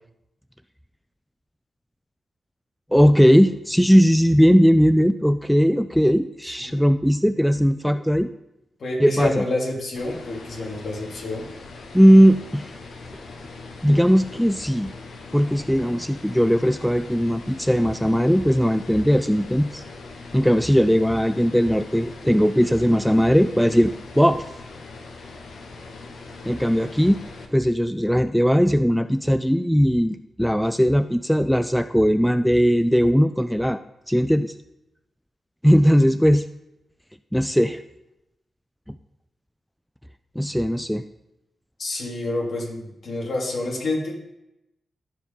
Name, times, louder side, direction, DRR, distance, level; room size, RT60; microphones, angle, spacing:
voice 1, 2.9-8.3 9.0-9.4 11.9-12.7 13.8-14.9 15.3-19.8 20.3-24.4 26.4-27.2 27.5-33.8 34.1-34.5 35.6-36.4 37.3-37.8 40.4-41.0, equal, ahead, 11 dB, 0.4 m, -18 dB
voice 2, 8.8-11.5 41.8-44.1, left 2 dB, 65° left, -1 dB, 2.8 m, -28 dB
sound 1, 10.0-27.5, left 3 dB, 85° left, 1.3 m, -41 dB
14.5 x 5.0 x 5.4 m, 0.90 s
cardioid pair, 80°, 0 cm